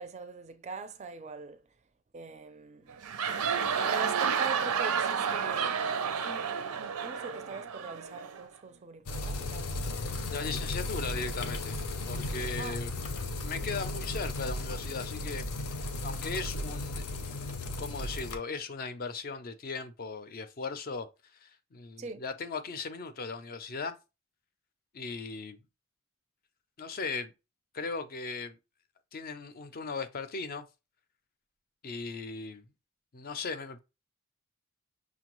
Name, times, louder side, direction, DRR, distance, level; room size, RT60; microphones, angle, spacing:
voice 1, 0.0-1.6 2.1-3.0 3.9-5.9 6.2-9.7 12.6-12.8 22.0-22.2, right 4 dB, 30° right, 0.4 m, -42 dB
sound 1, 2.9-8.5, right 7 dB, 85° right, 0.5 m, -31 dB
sound 2, 9.1-18.4, left 2 dB, 85° left, 0.6 m, -35 dB
voice 2, 10.3-11.7 12.1-12.9 13.4-15.5 16.0-17.0 17.8-21.1 21.3-24.0 24.9-25.6 26.8-27.3 27.7-28.6 29.1-30.7 31.8-32.7 33.1-33.8, left 4 dB, 40° left, 0.4 m, -37 dB
5.8 x 2.2 x 3.0 m
head